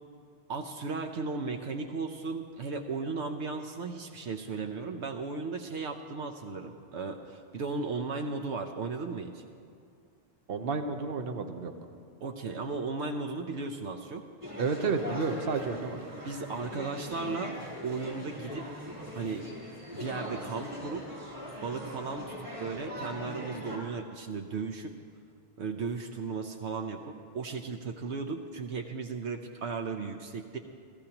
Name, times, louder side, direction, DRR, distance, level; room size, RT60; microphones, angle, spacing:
voice 1, 0.5-9.4 12.2-14.2 16.2-17.6 17.8-18.6 19.2-19.5 19.9-21.0 21.6-22.2 22.6-24.9 25.6-30.6, right 4 dB, 75° right, 4 dB, 1.1 m, -35 dB
voice 2, 10.5-11.7 14.6-16.0, right 4 dB, 55° right, 7 dB, 1.1 m, -31 dB
sound 1, 14.4-23.8, left 1 dB, 25° right, 3.6 m, -41 dB
29.0 x 15.0 x 2.9 m, 2.3 s
omnidirectional pair, 1.2 m